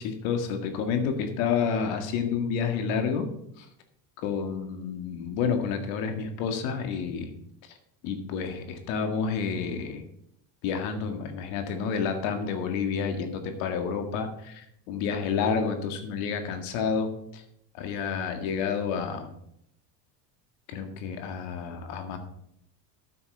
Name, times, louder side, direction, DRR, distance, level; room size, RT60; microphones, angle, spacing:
voice 1, 0.0-3.3 3.6-3.7 4.2-7.3 8.0-10.0 10.6-14.6 14.9-17.4 17.7-19.3 20.7-22.2, left 6 dB, 75° left, 7 dB, 1.9 m, -29 dB
9.3 x 5.8 x 6.8 m, 0.75 s
supercardioid pair, 105°, 46 cm